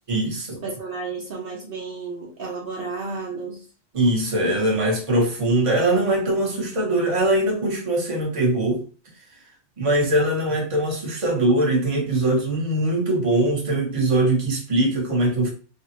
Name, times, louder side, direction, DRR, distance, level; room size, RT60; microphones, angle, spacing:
voice 1, 0.1-0.6 3.9-8.8 9.8-15.5, right 1 dB, 35° right, -1 dB, 0.9 m, -21 dB
voice 2, 0.6-3.6, right 4 dB, 65° right, -2 dB, 0.8 m, -32 dB
3.4 x 2.0 x 2.8 m, 0.38 s
omnidirectional pair, 1.1 m